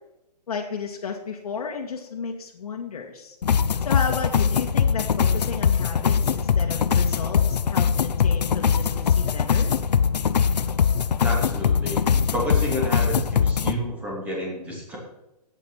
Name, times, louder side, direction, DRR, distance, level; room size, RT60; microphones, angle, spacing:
voice 1, 0.5-3.4 3.8-9.7, left 5 dB, 65° left, 1 dB, 1.9 m, -33 dB
sound 1, 3.4-13.7, left 7 dB, 85° left, 0.9 m, -22 dB
voice 2, 11.2-15.0, equal, 5° right, -3 dB, 3.0 m, -30 dB
12.0 x 9.0 x 5.9 m, 0.93 s
hypercardioid pair, 170°, 21 cm